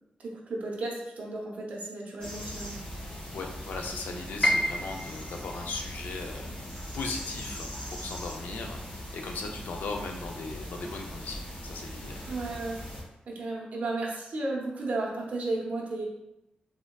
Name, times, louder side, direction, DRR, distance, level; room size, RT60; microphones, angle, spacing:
voice 1, 0.2-2.8 12.3-12.8 13.3-16.1, right 2 dB, 55° right, -2 dB, 0.6 m, -34 dB
sound 1, 2.2-13.0, equal, 35° left, 0.8 m, -40 dB
voice 2, 3.3-12.2, left 3 dB, 85° left, 2 dB, 0.4 m, -38 dB
Piano, 4.4-10.4 10.7-11.8 12.2-12.3 13.1-13.4, equal, 15° left, 0.3 m, -34 dB
3.6 x 2.2 x 2.2 m, 0.87 s
wide cardioid pair, 155°, 3 cm